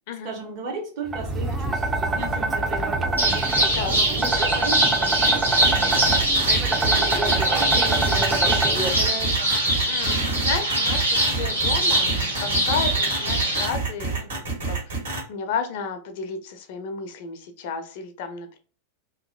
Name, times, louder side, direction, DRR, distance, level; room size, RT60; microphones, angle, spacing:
voice 1, 0.2-3.4 4.1-9.5, right 3 dB, 45° right, 0.9 m, -35 dB
sound 1, 1.1-8.9, right 3 dB, 15° right, 0.4 m, -25 dB
sound 2, 3.2-13.7, right 1 dB, 85° right, 0.9 m, -23 dB
sound 3, 5.6-15.2, right 4 dB, 65° right, 1.2 m, -28 dB
voice 2, 9.8-14.3 14.7-15.0 15.3-18.6, left 6 dB, 50° left, 0.4 m, -32 dB
2.7 x 2.3 x 2.6 m
figure-of-eight pair, 90°, 0 cm